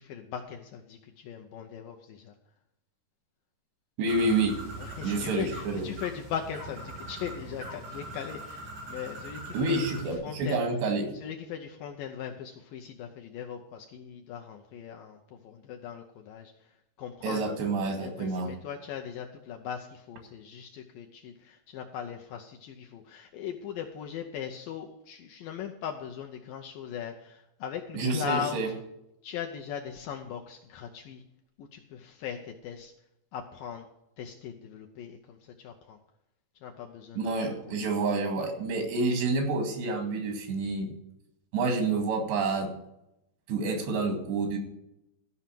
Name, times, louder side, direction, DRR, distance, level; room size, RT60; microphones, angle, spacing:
voice 1, 0.0-2.3 4.8-10.6 11.1-16.7 17.0-17.5 18.0-28.8 29.2-31.2 31.6-32.9 33.3-33.9 34.2-36.0 36.6-37.9, left 8 dB, 75° left, 2 dB, 2.1 m, -39 dB
voice 2, 4.0-4.6 5.0-5.9 9.5-11.1 17.2-18.5 27.9-28.7 37.2-40.9 41.5-42.7 43.5-44.6, right 3 dB, 85° right, 4 dB, 4.3 m, -28 dB
Bird, 4.1-10.2, right 2 dB, 45° right, 7.2 m, -41 dB
14.0 x 5.6 x 7.6 m, 0.83 s
omnidirectional pair, 4.8 m